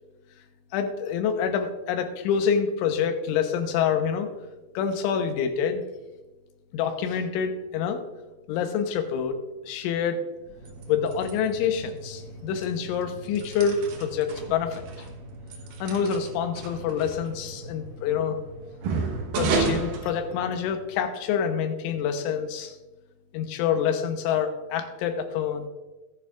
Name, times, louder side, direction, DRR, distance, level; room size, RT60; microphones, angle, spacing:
voice 1, 0.7-4.3 4.7-5.8 6.7-8.0 8.5-9.4 9.7-10.2 10.9-14.8 15.8-18.4 19.4-22.8 23.3-25.7, left 7 dB, 80° left, 6 dB, 3.3 m, -27 dB
sound 1, 10.4-20.9, right 3 dB, 80° right, 1.9 m, -34 dB
15.0 x 10.5 x 2.4 m, 1.2 s
omnidirectional pair, 5.7 m